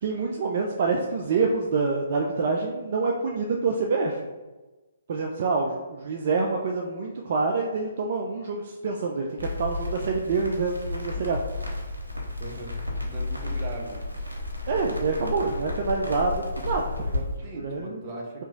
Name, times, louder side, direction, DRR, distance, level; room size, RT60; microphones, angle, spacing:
voice 1, 0.0-4.3 5.1-11.4 14.7-17.3 17.5-18.1, right 4 dB, 45° right, 1 dB, 0.3 m, -27 dB
Crackle, 9.4-17.2, left 2 dB, 90° right, 0.8 m, -32 dB
voice 2, 12.4-14.0 17.4-18.4, right 2 dB, 25° right, -2 dB, 0.7 m, -39 dB
2.9 x 2.3 x 3.8 m, 1.2 s
figure-of-eight pair, 130°, 0 cm